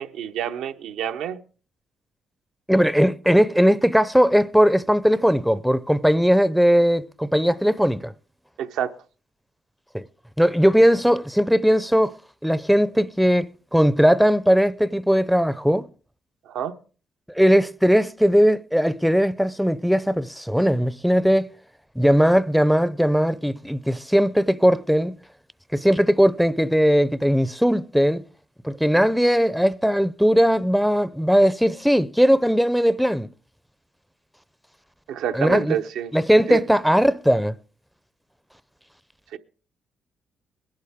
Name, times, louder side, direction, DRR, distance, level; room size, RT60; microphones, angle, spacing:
voice 1, 0.0-1.4 8.6-8.9 16.5-16.7 35.1-36.1 36.5-36.6 39.3-39.4, right 9 dB, 85° right, 0.8 m, -28 dB
voice 2, 2.7-8.1 9.9-10.1 10.4-12.1 12.4-15.9 17.4-21.5 22.0-25.1 25.7-28.2 28.6-33.3 35.3-35.8 36.1-37.5, equal, ahead, 0.6 m, -19 dB
21.0 x 11.5 x 3.6 m
cardioid pair, 90°, 0 cm